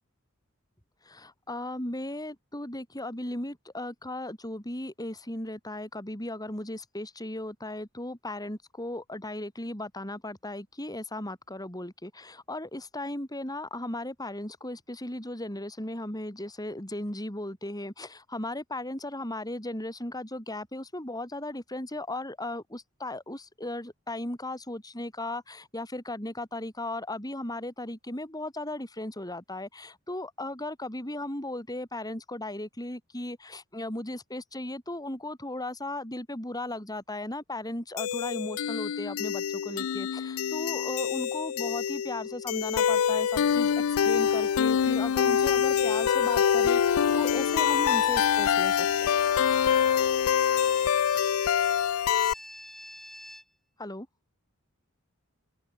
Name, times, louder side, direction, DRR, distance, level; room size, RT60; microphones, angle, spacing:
voice 1, 1.1-43.8 44.0-49.1 53.8-54.1, left 1 dB, 20° left, 5.7 m, -36 dB
sound 1, 38.0-52.3, left 8 dB, 90° left, 0.4 m, -25 dB
sound 2, 46.2-53.4, equal, ahead, 6.7 m, -47 dB
open air
head